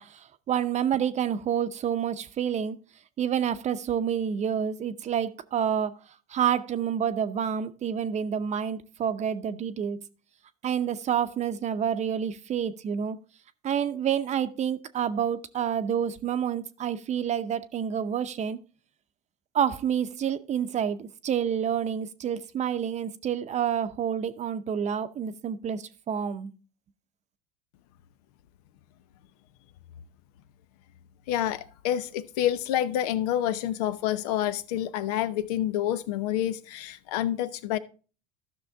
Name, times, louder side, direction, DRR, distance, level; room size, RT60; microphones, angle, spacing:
voice 1, 0.0-2.8 3.2-5.9 6.3-10.0 10.6-13.2 13.6-18.6 19.5-26.5, right 8 dB, 35° right, 0.7 m, -28 dB
voice 2, 31.3-37.8, left 11 dB, 80° left, 0.7 m, -28 dB
13.0 x 6.2 x 3.5 m
supercardioid pair, 100°, 20 cm